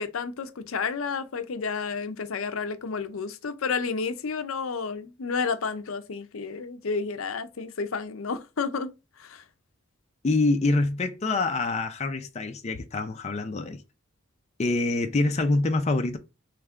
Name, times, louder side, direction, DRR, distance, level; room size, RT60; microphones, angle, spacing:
voice 1, 0.0-8.9 9.2-9.4, left 5 dB, 75° left, 0.6 m, -31 dB
voice 2, 10.2-13.8 14.6-16.2, left 2 dB, 30° left, 0.5 m, -25 dB
3.5 x 3.2 x 3.5 m
head